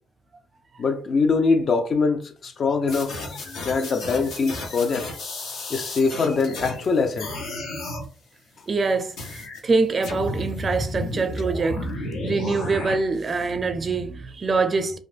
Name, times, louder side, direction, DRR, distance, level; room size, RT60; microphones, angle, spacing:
voice 1, 0.8-3.2 3.6-5.1 5.7-7.4, left 4 dB, 50° left, 0.5 m, -23 dB
sound 1, 2.9-6.9 7.2-8.1 9.2-9.6 10.0-12.9, left 1 dB, 75° left, 0.9 m, -32 dB
voice 2, 8.7-11.9 12.2-15.0, right 4 dB, 40° right, 0.4 m, -24 dB
2.5 x 2.4 x 3.3 m
cardioid pair, 90°, 0 cm